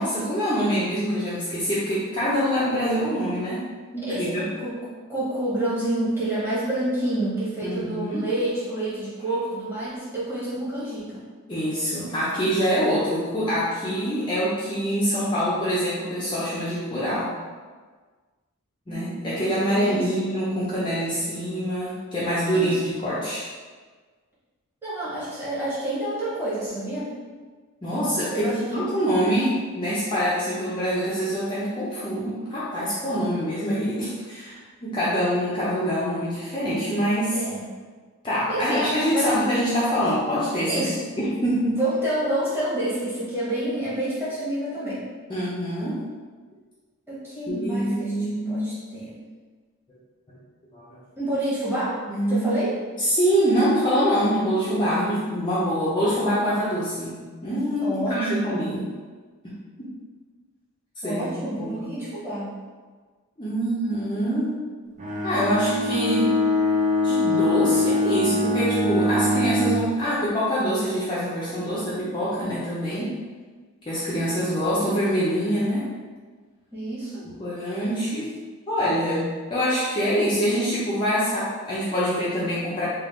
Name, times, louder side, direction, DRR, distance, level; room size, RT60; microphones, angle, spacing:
voice 1, 0.0-3.6 3.9-4.4 7.6-8.3 11.5-17.3 18.9-23.4 27.8-37.4 38.2-40.9 41.2-41.8 45.3-46.0 47.5-48.7 50.7-50.9 52.1-52.5 53.0-58.9 59.4-59.5 59.8-59.9 61.0-61.9 63.4-64.5 65.2-66.3 67.0-73.1 73.9-75.9 77.4-78.3 78.7-82.8, equal, 20° left, -10 dB, 0.6 m, -25 dB
voice 2, 4.1-11.2 18.9-20.1 22.5-22.8 24.8-27.1 28.3-28.6 37.3-37.7 38.5-39.3 40.7-41.0 41.8-45.0 47.1-49.1 51.2-52.0 52.3-52.7 57.8-58.8 61.0-62.5 76.7-77.2, right 1 dB, 10° right, -10 dB, 1.3 m, -28 dB
Bowed string instrument, 65.0-69.9, left 2 dB, 30° right, 0.5 m, -23 dB
3.5 x 2.5 x 3.7 m, 1.4 s
head